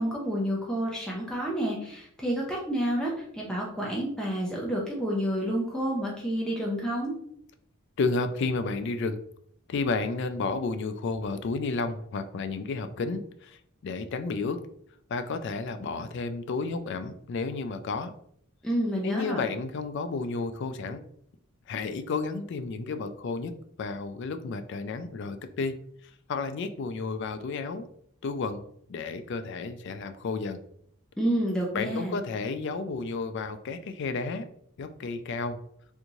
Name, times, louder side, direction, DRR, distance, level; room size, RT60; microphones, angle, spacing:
voice 1, 0.0-7.2 18.6-19.4 31.2-32.2, equal, 5° left, -3 dB, 0.5 m, -29 dB
voice 2, 8.0-9.2 9.7-14.6 15.1-18.1 19.0-21.0 21.7-23.5 23.8-25.8 26.0-27.9 28.2-30.6 31.7-34.5 34.8-35.6, left 4 dB, 55° left, 10 dB, 0.3 m, -32 dB
3.5 x 2.6 x 3.0 m, 0.67 s
head